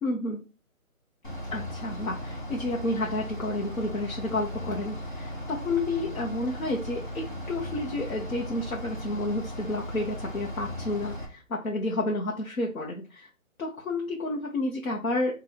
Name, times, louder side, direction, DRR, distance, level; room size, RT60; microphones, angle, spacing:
voice 1, 0.0-0.4 1.5-13.3 13.6-15.4, left 2 dB, 80° left, -1 dB, 1.2 m, -30 dB
Bus / Idling, 1.2-11.3, equal, 35° left, 0.8 m, -37 dB
3.9 x 2.6 x 4.3 m, 0.33 s
hypercardioid pair, 180°, 43 cm